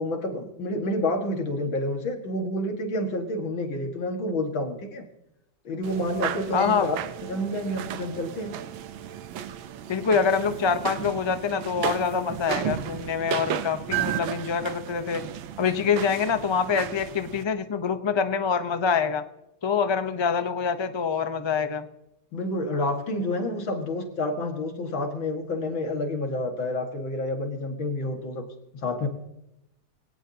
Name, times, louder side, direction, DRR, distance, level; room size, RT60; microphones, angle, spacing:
voice 1, 0.0-5.1 5.6-7.0 7.2-8.6 22.3-28.5 28.8-29.1, left 1 dB, 75° left, 4 dB, 2.7 m, -29 dB
sound 1, 5.8-17.4, right 10 dB, 85° right, 1.6 m, -34 dB
voice 2, 6.5-6.9 9.9-15.3 15.6-19.2 19.6-21.9, left 6 dB, 40° left, 9 dB, 0.3 m, -25 dB
23.5 x 18.0 x 2.9 m, 0.88 s
omnidirectional pair, 2.1 m